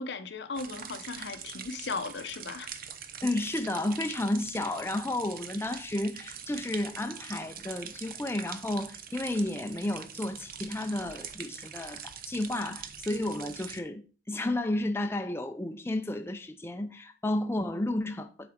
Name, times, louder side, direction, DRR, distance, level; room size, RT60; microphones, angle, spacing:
voice 1, 0.0-2.8, left 4 dB, 70° left, 0.8 m, -37 dB
sound 1, 0.6-13.8, right 8 dB, 55° right, 0.7 m, -43 dB
voice 2, 3.2-18.5, left 1 dB, 15° left, 0.5 m, -32 dB
8.0 x 4.0 x 4.9 m
head